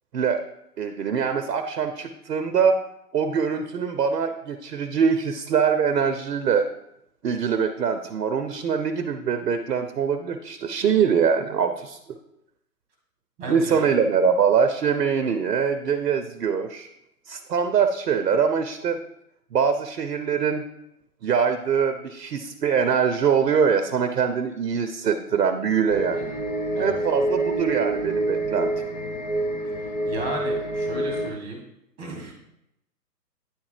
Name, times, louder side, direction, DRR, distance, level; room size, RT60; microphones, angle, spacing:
voice 1, 0.8-2.8 3.1-6.7 7.2-12.0 13.5-16.9 17.3-19.0 19.5-20.6 21.2-26.2 26.8-28.7, right 6 dB, 70° right, 8 dB, 0.7 m, -23 dB
voice 2, 13.4-13.8 26.1-26.4 26.7-26.9 30.0-31.6 32.0-32.3, right 2 dB, 15° right, 0 dB, 1.4 m, -33 dB
sound 1, 25.9-31.3, right 2 dB, 25° left, 0.6 m, -27 dB
9.4 x 3.7 x 3.2 m, 0.81 s
figure-of-eight pair, 140°, 49 cm